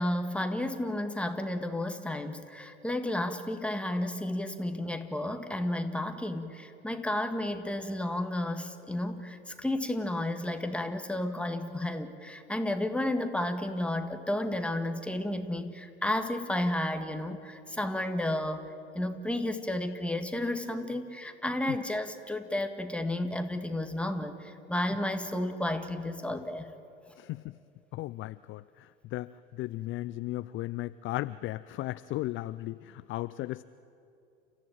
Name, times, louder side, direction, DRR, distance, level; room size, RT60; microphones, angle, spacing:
voice 1, 0.0-26.7, left 1 dB, 5° left, 7 dB, 1.9 m, -32 dB
voice 2, 27.2-27.6 27.9-33.6, left 16 dB, 35° left, 16 dB, 0.5 m, -36 dB
30.0 x 14.5 x 9.1 m, 2.6 s
figure-of-eight pair, 70°, 35 cm